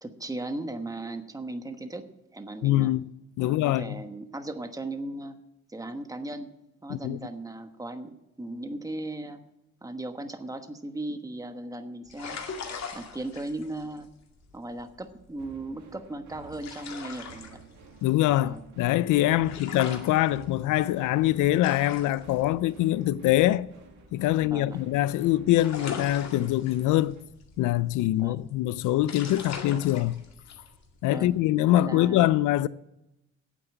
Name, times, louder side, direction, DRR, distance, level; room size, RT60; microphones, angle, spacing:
voice 1, 0.0-2.9 3.4-5.4 5.7-6.5 6.8-9.4 9.8-12.4 12.9-14.1 14.5-17.6 18.4-18.6 19.4-19.5 24.5-24.8 28.1-28.4 31.1-31.4 31.7-32.2, right 2 dB, 10° right, 1.2 m, -37 dB
voice 2, 2.6-3.1 3.4-4.0 6.9-7.2 18.0-23.7 24.1-27.2 27.6-30.2 31.0-32.7, left 14 dB, 80° left, 0.5 m, -24 dB
sound 1, 12.1-25.0 25.2-31.4, left 5 dB, 60° left, 2.2 m, -41 dB
sound 2, 15.4-27.2, right 5 dB, 70° right, 2.1 m, -51 dB
9.2 x 8.2 x 9.0 m
cardioid pair, 90°, 30 cm